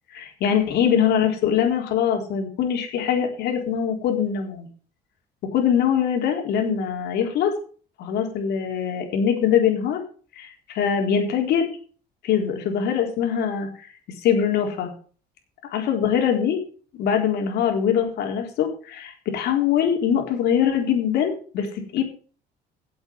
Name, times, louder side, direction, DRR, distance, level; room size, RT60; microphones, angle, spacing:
voice 1, 0.1-4.7 5.5-7.5 8.0-10.0 10.4-11.7 12.2-13.9 14.2-14.9 15.7-16.6 16.9-21.7 21.9-22.0, left 8 dB, 75° left, 2 dB, 4.0 m, -22 dB
9.6 x 8.0 x 7.2 m, 0.42 s
cardioid pair, 110°, 17 cm